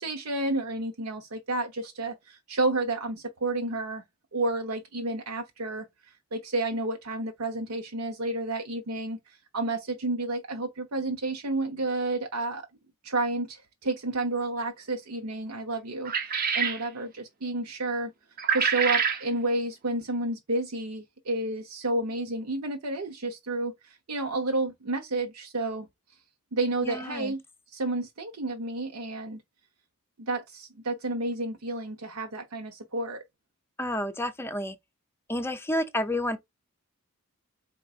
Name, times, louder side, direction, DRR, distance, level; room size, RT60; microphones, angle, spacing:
voice 1, 0.0-4.0 4.3-5.9 6.3-9.2 9.5-12.6 13.0-18.1 18.5-25.9 26.5-27.4 27.7-29.4 30.2-33.2, right 2 dB, 80° right, 0.8 m, -30 dB
sound 1, 16.0-16.8 18.4-19.2, right 6 dB, 45° right, 0.8 m, -26 dB
voice 2, 26.8-27.3 33.8-34.7 35.3-36.4, left 1 dB, 10° left, 0.5 m, -30 dB
4.4 x 3.8 x 2.4 m
head